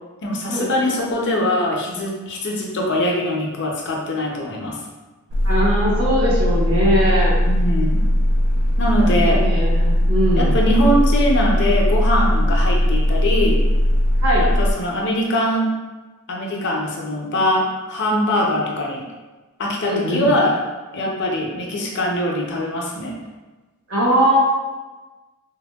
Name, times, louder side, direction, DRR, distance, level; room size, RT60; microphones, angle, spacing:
voice 1, 0.2-4.8 7.5-8.0 8.8-9.4 10.4-13.6 14.4-15.7 16.3-19.0 19.6-20.6 20.9-23.1, left 1 dB, 55° left, -1 dB, 0.5 m, -22 dB
sound 1, 5.3-14.7, equal, 85° right, 0.3 m, -18 dB
voice 2, 5.4-7.4 9.0-10.5 14.2-14.5 19.8-20.3 23.9-24.4, equal, 65° right, -6 dB, 0.9 m, -20 dB
3.3 x 2.0 x 2.2 m, 1.2 s
head